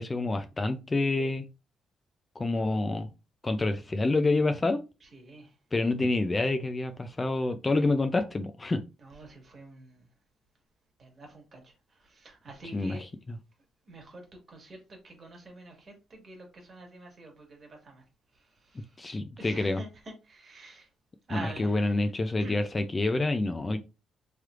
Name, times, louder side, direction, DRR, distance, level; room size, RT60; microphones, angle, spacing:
voice 1, 0.0-1.5 2.4-3.1 3.4-4.8 5.7-8.8 12.7-13.0 19.0-19.8 21.3-23.8, left 2 dB, 25° left, 0.4 m, -27 dB
voice 2, 5.0-5.6 9.0-10.1 11.0-13.1 13.8-18.0 18.3-19.0 19.4-20.9 21.3-22.1 22.4-22.6, right 2 dB, 40° right, 1.5 m, -47 dB
3.2 x 3.1 x 2.4 m
cardioid pair, 90°, 0 cm